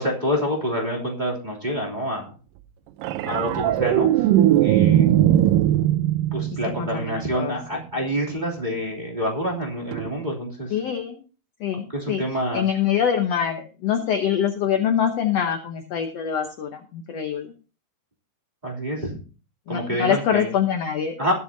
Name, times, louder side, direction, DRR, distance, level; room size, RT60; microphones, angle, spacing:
voice 1, 0.0-2.3 3.2-4.3 4.6-5.1 6.3-10.7 11.9-12.7 18.6-19.2 19.7-20.5 21.2-21.3, equal, 15° right, -3 dB, 2.7 m, -27 dB
sound 1, 3.0-7.5 9.9-10.1, right 12 dB, 80° right, 2.3 m, -19 dB
voice 2, 6.5-7.6 10.7-11.2 11.6-17.5 19.7-21.2, left 8 dB, 65° left, 5 dB, 1.7 m, -25 dB
20.5 x 8.2 x 2.7 m, 0.36 s
omnidirectional pair, 3.9 m